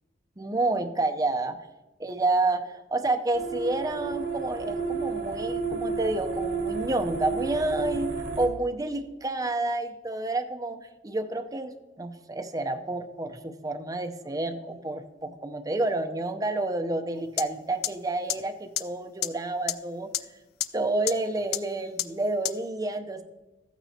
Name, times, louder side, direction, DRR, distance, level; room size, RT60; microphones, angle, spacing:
voice 1, 0.4-1.6 2.0-8.1 8.4-20.1 20.7-23.2, right 2 dB, 20° right, 6 dB, 0.6 m, -29 dB
sound 1, 3.3-8.5, right 4 dB, 85° right, 1.3 m, -31 dB
sound 2, 17.4-17.5 17.8-17.9 18.3-18.4 18.8-18.9 19.2-19.3 19.7-19.8 20.1-20.2 20.6-20.7 21.1-21.2 21.5-21.6 22.0-22.1 22.4-22.5, left 12 dB, 55° left, 0.4 m, -26 dB
14.0 x 9.0 x 2.8 m, 1.1 s
head